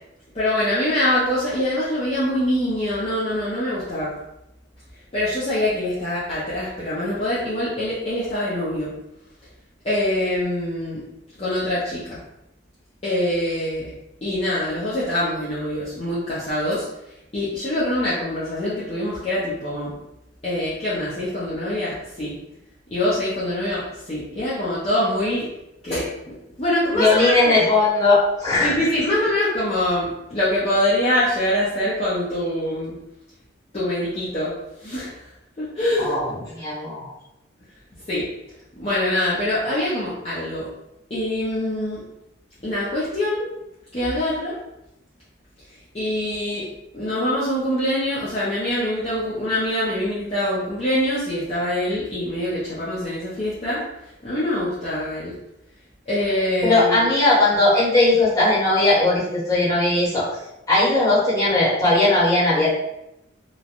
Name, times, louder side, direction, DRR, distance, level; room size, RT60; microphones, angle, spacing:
voice 1, 0.3-4.1 5.1-8.9 9.8-11.0 11.4-12.2 13.0-13.9 14.2-16.8 17.3-19.9 20.4-22.4 22.9-25.5 25.8-27.6 28.6-32.9 33.7-34.5 34.8-35.1 35.6-36.1 38.1-38.3 38.8-40.7 41.1-42.0 42.6-43.5 43.9-44.6 45.9-46.7 46.9-53.8 54.2-55.3 56.1-57.0, left 1 dB, 35° left, -10 dB, 0.7 m, -24 dB
voice 2, 26.9-28.7 36.0-37.1 56.6-60.3 60.7-62.7, left 2 dB, 20° left, -10 dB, 1.2 m, -18 dB
3.1 x 2.2 x 2.5 m, 0.87 s
head